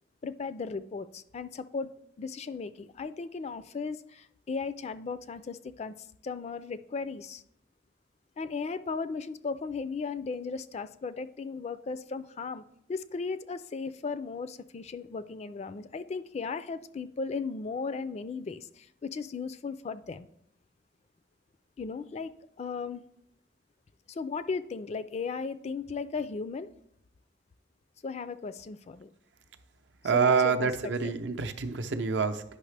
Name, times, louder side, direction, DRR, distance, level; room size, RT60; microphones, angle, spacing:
voice 1, 0.2-7.4 8.4-12.6 12.9-20.3 21.8-23.0 24.1-26.7 28.0-29.1 30.1-30.7 31.0-31.1, left 4 dB, 35° left, 14 dB, 0.3 m, -36 dB
voice 2, 30.0-32.4, right 5 dB, 75° right, 8 dB, 0.6 m, -26 dB
9.8 x 5.6 x 3.3 m, 0.75 s
head